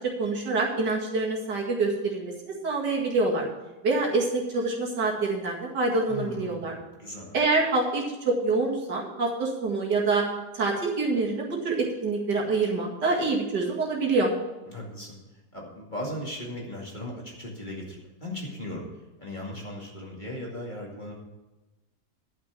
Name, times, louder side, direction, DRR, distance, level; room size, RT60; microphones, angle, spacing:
voice 1, 0.2-3.5 3.8-6.7 7.3-10.2 10.5-14.3, right 3 dB, 80° right, -2 dB, 2.7 m, -26 dB
voice 2, 6.1-7.4 14.7-15.2 15.5-18.9 19.2-21.1, left 1 dB, 25° left, -2 dB, 2.4 m, -37 dB
11.5 x 6.1 x 7.5 m, 1.1 s
omnidirectional pair, 1.8 m